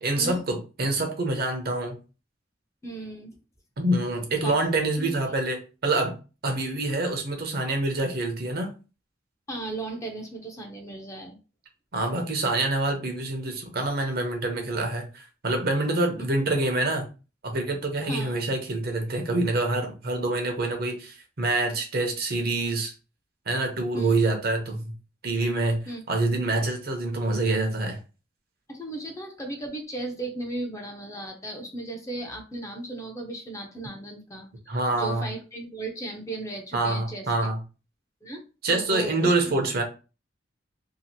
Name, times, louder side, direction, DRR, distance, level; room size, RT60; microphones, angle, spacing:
voice 1, 0.0-2.0 3.8-6.1 6.4-8.7 11.9-17.1 17.4-22.9 23.5-24.9 25.2-28.0 34.7-35.3 36.7-37.6 38.6-39.8, right 2 dB, 55° right, 4 dB, 0.7 m, -26 dB
voice 2, 2.8-3.4 4.4-4.6 5.0-5.2 9.5-11.4 18.0-18.4 23.9-24.2 25.9-26.0 28.7-37.3 38.2-38.4 38.7-39.3, right 2 dB, 15° left, 2 dB, 0.5 m, -36 dB
2.8 x 2.4 x 2.7 m, 0.33 s
head